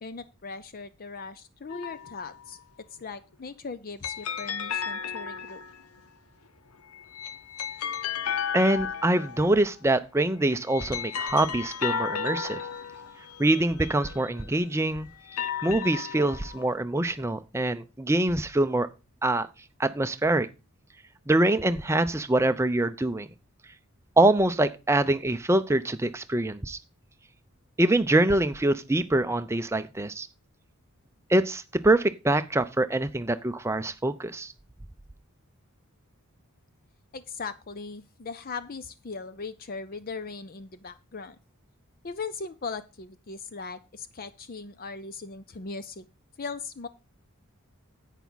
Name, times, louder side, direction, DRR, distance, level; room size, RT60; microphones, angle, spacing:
voice 1, 0.0-2.6 3.0-5.6 37.1-41.4 42.0-46.1 46.4-46.9, left 4 dB, 40° left, 13 dB, 0.6 m, -39 dB
sound 1, 1.7-2.4 4.0-6.0 6.9-9.7 10.5-14.5 15.1-16.7, left 7 dB, 85° left, 0.8 m, -34 dB
voice 2, 8.5-12.6 13.4-15.1 15.6-18.9 19.2-19.5 19.8-20.5 21.3-23.3 24.2-26.8 27.8-30.3 31.3-34.5, right 1 dB, 10° right, 10 dB, 0.5 m, -24 dB
10.5 x 8.2 x 4.0 m, 0.29 s
head